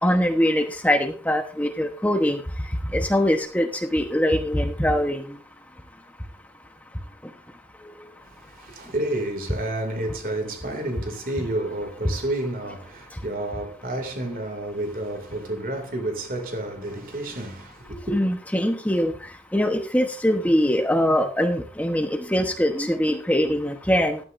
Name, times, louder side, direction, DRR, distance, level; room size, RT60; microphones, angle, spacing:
voice 1, 0.0-2.4 2.9-5.2 18.1-19.1 19.5-24.2, equal, 10° left, 1.0 m, -22 dB
voice 2, 8.2-18.2, right 1 dB, 55° right, 2.5 m, -30 dB
15.0 x 12.0 x 2.6 m
head